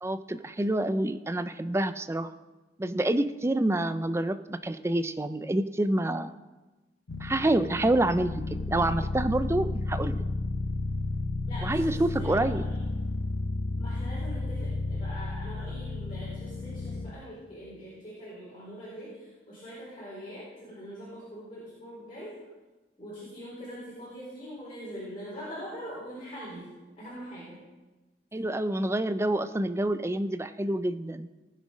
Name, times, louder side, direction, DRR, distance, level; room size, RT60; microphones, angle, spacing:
voice 1, 0.0-2.3 2.8-6.3 7.2-8.4 8.7-10.2 11.6-12.7 28.3-31.3, right 1 dB, 15° right, 11 dB, 0.4 m, -27 dB
sound 1, 7.1-17.1, left 3 dB, 70° left, 0.8 m, -32 dB
voice 2, 11.5-12.8 13.8-22.4 23.0-26.7 27.0-27.6, equal, 30° left, -9 dB, 4.5 m, -43 dB
18.5 x 7.4 x 5.1 m, 1.2 s
head